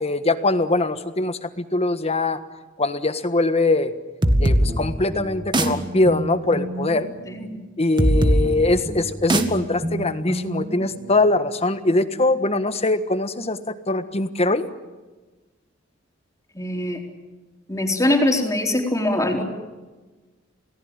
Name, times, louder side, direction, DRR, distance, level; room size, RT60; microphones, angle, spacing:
voice 1, 0.0-2.4 2.8-3.9 4.4-7.1 7.8-13.6 13.9-14.6, left 2 dB, 30° left, 10 dB, 1.5 m, -22 dB
sound 1, 4.2-11.6, right 1 dB, 25° right, 1.9 m, -23 dB
voice 2, 16.5-17.0 17.7-19.4, left 1 dB, 15° left, 2 dB, 4.1 m, -22 dB
29.0 x 19.0 x 9.0 m, 1.2 s
head